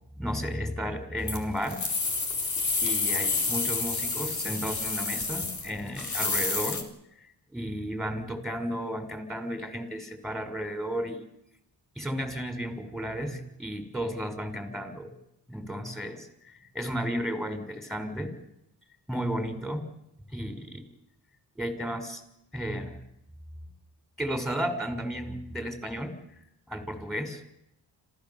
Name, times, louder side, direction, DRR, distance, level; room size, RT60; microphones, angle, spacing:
voice 1, 0.2-1.8 2.8-6.8 7.2-11.2 12.0-15.1 15.5-18.3 19.1-19.8 20.3-20.8 21.6-22.2 22.5-23.0 24.2-26.1 26.7-27.4, equal, ahead, 6 dB, 5.9 m, -33 dB
sound 1, 1.3-6.8, left 3 dB, 45° left, 4.2 m, -29 dB
27.0 x 16.0 x 7.4 m, 0.81 s
cardioid pair, 65°, 40 cm